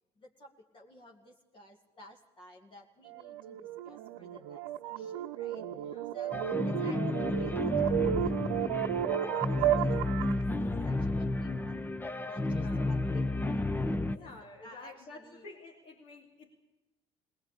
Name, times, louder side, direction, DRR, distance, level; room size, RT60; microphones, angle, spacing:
voice 1, 0.2-5.6 6.1-6.4 6.6-10.0 10.4-11.8 12.2-15.5, left 1 dB, 35° left, 1 dB, 2.3 m, -54 dB
sound 1, 3.1-10.4, right 12 dB, 70° right, 1.0 m, -33 dB
voice 2, 5.7-6.2 12.4-13.0 14.0-16.5, left 3 dB, 60° left, -1 dB, 3.0 m, -51 dB
sound 2, 6.3-14.2, left 2 dB, 15° left, 1.0 m, -32 dB
20.5 x 19.0 x 8.6 m, 1.1 s
hypercardioid pair, 60°, 14 cm